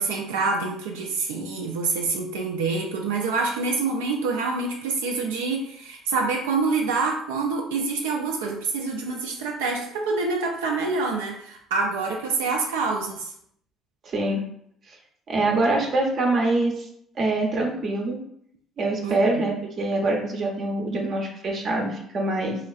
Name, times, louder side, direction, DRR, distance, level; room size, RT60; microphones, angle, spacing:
voice 1, 0.0-13.3 19.0-19.4, right 4 dB, 80° right, 1 dB, 0.4 m, -26 dB
voice 2, 14.0-14.5 14.9-15.0 15.3-16.9 17.2-18.2 18.8-22.6, right 2 dB, 50° right, 0 dB, 0.7 m, -24 dB
3.1 x 2.4 x 2.3 m, 0.69 s
hypercardioid pair, 55°, 0 cm